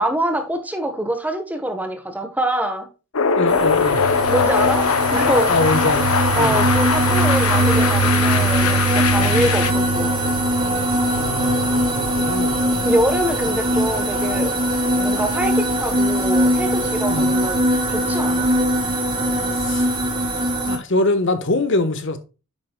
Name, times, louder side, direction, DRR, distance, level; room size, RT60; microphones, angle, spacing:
voice 1, 0.0-2.9 4.3-5.6 6.3-10.1 12.8-14.6 15.0-17.6 17.9-18.5, right 1 dB, 5° right, 1.4 m, -24 dB
sound 1, 3.1-9.7, left 6 dB, 85° left, 0.8 m, -21 dB
voice 2, 3.3-4.0 5.5-6.7 9.2-9.5 11.1-12.6 17.1-17.3 19.6-19.9 20.7-22.2, left 2 dB, 60° left, 1.4 m, -23 dB
sound 2, 3.5-20.8, right 1 dB, 25° right, 3.4 m, -21 dB
9.8 x 7.4 x 2.4 m
head